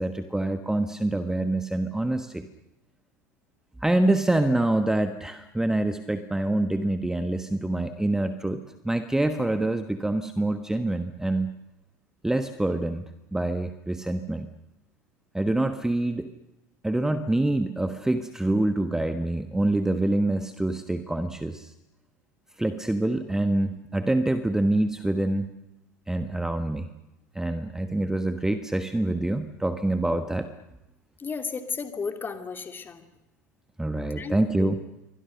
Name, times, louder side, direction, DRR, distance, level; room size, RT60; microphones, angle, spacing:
voice 1, 0.0-2.5 3.8-11.5 12.2-13.0 13.3-14.5 15.3-16.3 16.8-21.7 22.6-25.5 26.1-26.9 27.3-30.5 33.8-34.8, right 1 dB, 5° right, 10 dB, 1.2 m, -26 dB
voice 2, 31.2-33.0 34.2-34.7, left 5 dB, 20° left, 7 dB, 2.7 m, -34 dB
28.0 x 24.0 x 6.6 m, 0.94 s
figure-of-eight pair, 80°, 10 cm